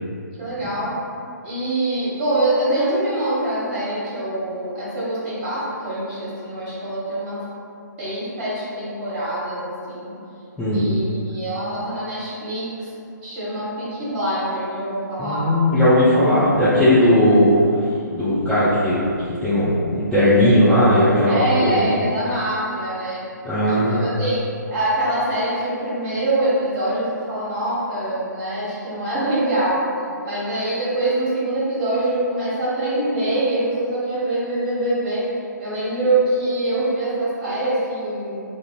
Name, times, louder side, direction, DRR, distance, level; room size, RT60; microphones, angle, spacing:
voice 1, 0.4-0.9 1.4-7.4 8.0-10.1 10.7-12.9 13.2-15.5 21.3-23.2 23.7-24.4 24.7-29.8 30.2-35.3 35.6-38.4, right 1 dB, 30° right, -9 dB, 1.3 m, -24 dB
voice 2, 15.2-17.5 18.1-19.1 19.4-21.9 23.4-24.1, left 1 dB, ahead, -17 dB, 0.4 m, -17 dB
2.4 x 2.4 x 3.0 m, 2.5 s
figure-of-eight pair, 135°, 10 cm